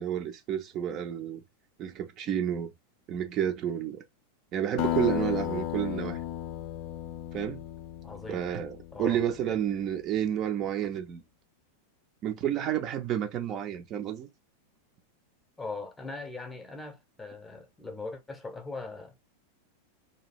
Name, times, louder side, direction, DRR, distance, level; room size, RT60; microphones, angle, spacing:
voice 1, 0.0-1.4 1.8-2.7 3.1-4.0 4.5-6.2 7.3-7.6 8.3-11.2 12.2-14.3, right 10 dB, 35° right, 0.4 m, -30 dB
Acoustic guitar, 4.8-9.6, left 12 dB, 45° left, 0.3 m, -34 dB
voice 2, 8.0-8.4 8.9-9.2 15.6-19.1, left 3 dB, 10° left, 0.7 m, -40 dB
2.7 x 2.3 x 3.2 m
figure-of-eight pair, 90°, 0 cm